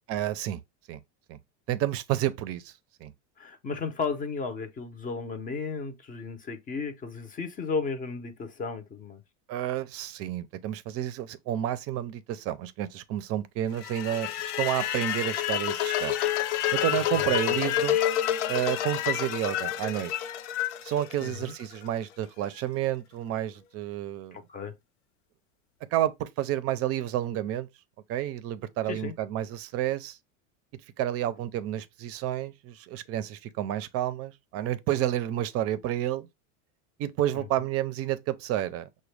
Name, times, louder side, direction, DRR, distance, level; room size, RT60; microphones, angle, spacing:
voice 1, 0.1-0.6 0.9-1.0 1.3-1.4 1.7-2.7 3.0-3.1 9.5-14.3 14.6-16.1 16.7-18.0 18.5-20.1 20.8-24.4 25.9-27.7 28.1-30.2 31.0-36.3 37.0-39.0, right 12 dB, 40° right, 0.5 m, -30 dB
voice 2, 3.4-9.2 17.0-17.4 21.2-21.5 24.3-24.7 28.9-29.1 37.3-37.4, left 4 dB, 20° left, 0.6 m, -34 dB
sound 1, 13.8-21.9, left 12 dB, 70° left, 0.6 m, -29 dB
6.1 x 2.2 x 3.2 m
supercardioid pair, 135°, 37 cm